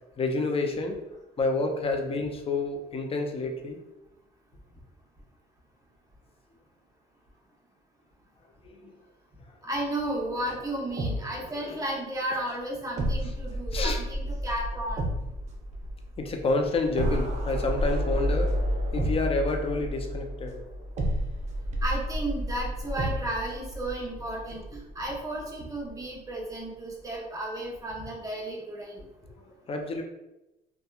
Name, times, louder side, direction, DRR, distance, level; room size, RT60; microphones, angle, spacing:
voice 1, 0.2-1.0 1.4-3.8 8.6-8.9 11.5-11.8 13.7-14.0 16.2-18.5 18.9-20.6 29.4-30.0, left 3 dB, 30° left, 3 dB, 0.5 m, -29 dB
voice 2, 9.6-15.0 21.8-29.0, right 1 dB, 20° right, -3 dB, 0.9 m, -33 dB
sound 1, 10.1-11.9 12.2-12.3 13.0-25.4 25.7-25.9, equal, 40° right, 0.6 m, -31 dB
2.8 x 2.2 x 2.3 m, 0.95 s
supercardioid pair, 80°, 19 cm